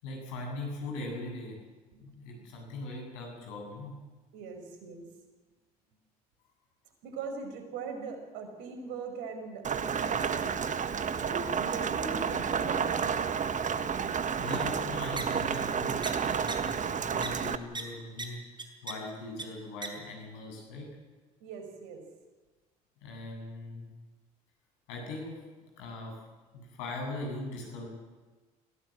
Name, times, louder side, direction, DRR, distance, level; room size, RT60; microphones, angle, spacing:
voice 1, 0.0-1.6 2.0-4.0 14.4-18.4 18.8-20.9 23.0-23.9 24.9-25.4 25.8-26.2 26.5-27.9, left 2 dB, 75° left, 1 dB, 7.9 m, -40 dB
voice 2, 4.3-5.1 7.0-10.6 11.2-13.4 21.4-22.0, right 4 dB, 70° right, 6 dB, 5.3 m, -40 dB
Rain, 9.6-17.6, right 6 dB, 40° right, 1.5 m, -31 dB
sound 1, 15.2-15.3 16.0-16.1 16.5-16.6 17.2-17.3 17.7-17.8 18.2-18.3 18.6-18.9 19.4-19.5 19.8-19.9, right 3 dB, 25° right, 4.7 m, -35 dB
23.0 x 17.0 x 8.8 m, 1.3 s
hypercardioid pair, 60°, 20 cm